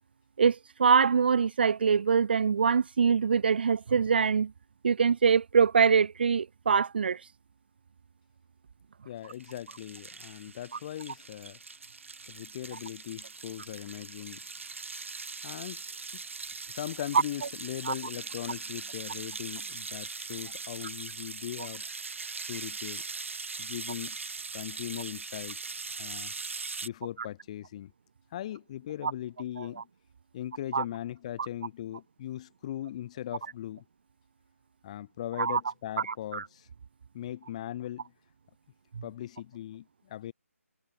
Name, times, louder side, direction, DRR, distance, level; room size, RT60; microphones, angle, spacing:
voice 1, 0.4-4.5 4.8-7.2 17.8-17.9 29.0-29.1 29.6-29.7 30.7-30.8 35.4-35.6 36.0-36.5 38.9-39.0, right 6 dB, 40° right, 0.7 m, -24 dB
voice 2, 9.0-11.6 12.3-14.4 15.4-15.8 16.1-16.2 16.7-21.8 22.5-23.0 23.6-24.2 24.5-25.6 26.0-26.3 26.8-27.9 28.3-29.8 30.3-33.8 34.8-36.7 37.1-38.1 39.0-40.3, left 12 dB, 25° left, 2.3 m, -39 dB
sound 1, 9.3-26.9, right 4 dB, 60° right, 2.3 m, -41 dB
figure-of-eight pair, 150°, 8 cm